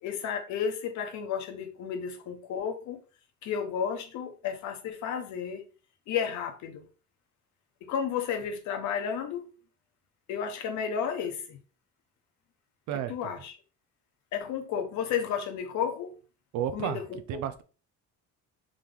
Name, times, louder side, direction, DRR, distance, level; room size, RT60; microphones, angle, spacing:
voice 1, 0.0-3.0 3.4-5.6 6.1-6.8 7.8-9.5 10.3-11.6 13.1-13.5 14.3-16.2 16.7-17.4, left 7 dB, 65° left, 0.9 m, -32 dB
voice 2, 12.9-13.3 16.5-17.0 17.3-17.6, right 10 dB, 70° right, 0.5 m, -32 dB
3.7 x 3.0 x 3.4 m
cardioid pair, 155°, 31 cm